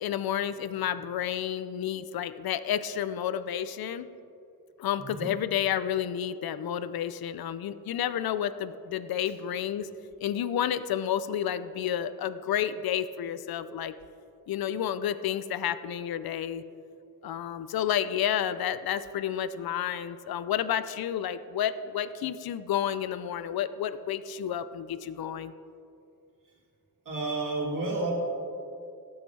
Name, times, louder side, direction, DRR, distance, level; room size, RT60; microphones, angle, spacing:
voice 1, 0.0-4.1 4.8-9.9 10.2-14.0 14.5-16.6 17.2-25.5, left 10 dB, 90° left, 13 dB, 0.5 m, -30 dB
voice 2, 27.1-28.1, right 3 dB, 60° right, -5 dB, 2.5 m, -31 dB
18.5 x 8.0 x 3.3 m, 2.6 s
wide cardioid pair, 120°, 35 cm